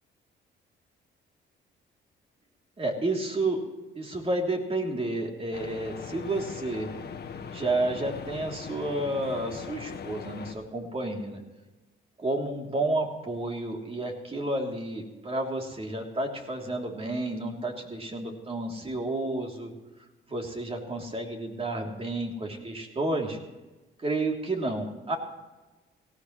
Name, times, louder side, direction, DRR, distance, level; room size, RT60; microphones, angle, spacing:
voice 1, 2.8-3.6 3.9-6.9 7.5-11.4 12.2-19.7 20.3-23.4 24.0-25.2, right 2 dB, 30° right, 1 dB, 3.1 m, -31 dB
sound 1, 5.5-10.5, left 6 dB, 55° left, 1.5 m, -40 dB
18.0 x 16.5 x 3.2 m, 1.2 s
cardioid pair, 90°, 20 cm